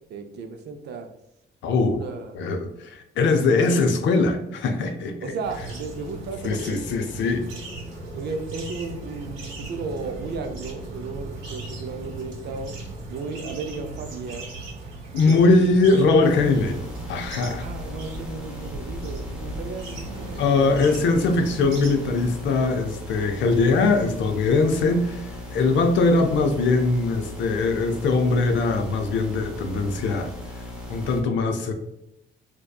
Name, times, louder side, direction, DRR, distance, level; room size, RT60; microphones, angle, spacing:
voice 1, 0.1-1.1 1.8-2.4 5.2-6.8 8.1-12.7 13.1-14.5 15.3-15.6 17.6-20.8, right 4 dB, 60° right, 6 dB, 0.4 m, -34 dB
voice 2, 1.6-2.0 2.3-5.3 6.4-7.5 15.1-17.7 20.4-30.3 30.9-31.7, left 3 dB, 70° left, 6 dB, 0.4 m, -21 dB
sound 1, 5.4-22.3, right 2 dB, 85° right, 0.8 m, -38 dB
sound 2, 16.2-31.2, left 1 dB, 5° right, 0.6 m, -38 dB
2.7 x 2.2 x 2.2 m, 0.84 s
cardioid pair, 90°, 20 cm